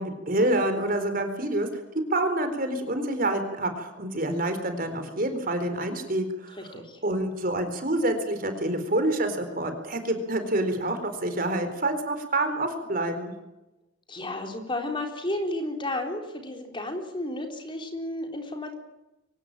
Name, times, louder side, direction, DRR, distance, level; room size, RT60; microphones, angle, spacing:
voice 1, 0.0-1.7 2.1-6.6 7.0-13.3, right 1 dB, 45° right, 7 dB, 4.1 m, -27 dB
voice 2, 6.6-7.0 14.1-18.7, left 1 dB, 25° left, 4 dB, 3.8 m, -32 dB
24.0 x 18.5 x 9.0 m, 0.94 s
head